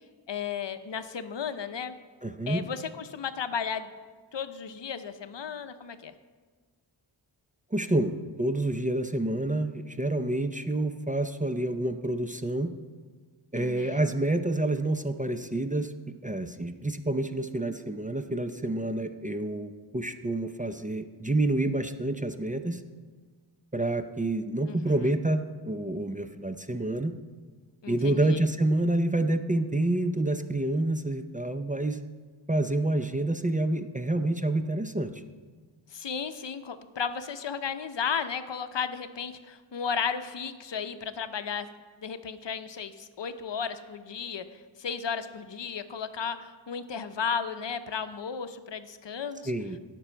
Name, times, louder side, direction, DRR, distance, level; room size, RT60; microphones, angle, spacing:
voice 1, 0.3-1.9 2.5-3.9 4.3-6.1 13.5-14.0 24.7-25.1 27.8-28.4 35.9-41.7 42.0-44.5 44.8-49.5, left 6 dB, 65° left, 10 dB, 0.7 m, -34 dB
voice 2, 2.2-2.6 7.7-12.7 13.5-15.9 16.2-22.8 23.7-27.1 27.9-32.0 32.5-35.2 49.5-49.8, right 2 dB, 20° right, 8 dB, 0.4 m, -28 dB
17.0 x 6.1 x 4.5 m, 1.4 s
wide cardioid pair, 75°, 46 cm